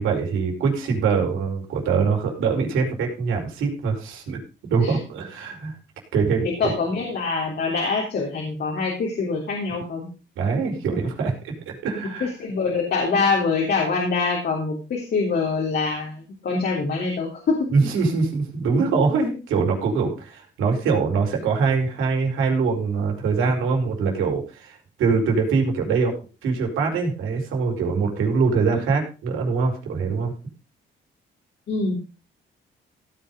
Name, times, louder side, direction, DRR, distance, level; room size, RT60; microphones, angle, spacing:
voice 1, 0.0-5.7 6.1-6.7 10.4-12.3 17.7-26.2 26.4-30.3, right 5 dB, 85° right, 1 dB, 4.5 m, -23 dB
voice 2, 6.4-10.1 12.2-17.7 31.7-32.0, left 4 dB, 60° left, -1 dB, 3.5 m, -24 dB
16.5 x 5.7 x 5.4 m, 0.33 s
cardioid pair, 90°, 20 cm